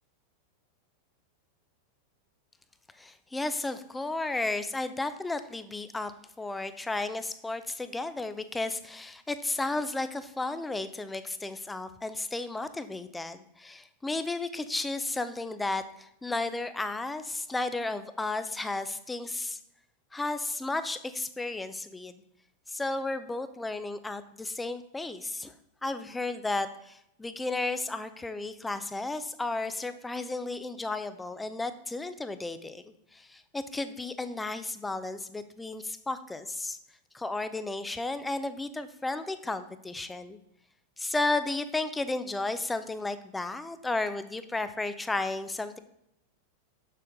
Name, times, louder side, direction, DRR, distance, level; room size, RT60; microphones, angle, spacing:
voice 1, 3.0-6.1 6.4-19.6 20.1-22.2 22.7-25.5 25.8-32.8 33.1-36.8 37.1-40.4 41.0-45.8, left 2 dB, 10° left, 11 dB, 0.6 m, -33 dB
6.7 x 6.6 x 3.6 m, 0.77 s
figure-of-eight pair, 90°, 0 cm